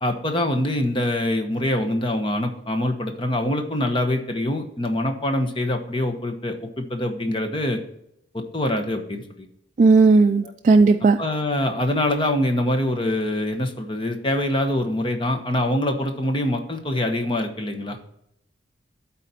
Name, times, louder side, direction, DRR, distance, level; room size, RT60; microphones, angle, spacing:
voice 1, 0.0-7.8 8.3-9.5 11.2-18.0, left 1 dB, 25° left, 5 dB, 1.0 m, -24 dB
voice 2, 9.8-11.2, right 3 dB, 45° right, 5 dB, 0.3 m, -15 dB
12.0 x 4.1 x 4.3 m, 0.76 s
head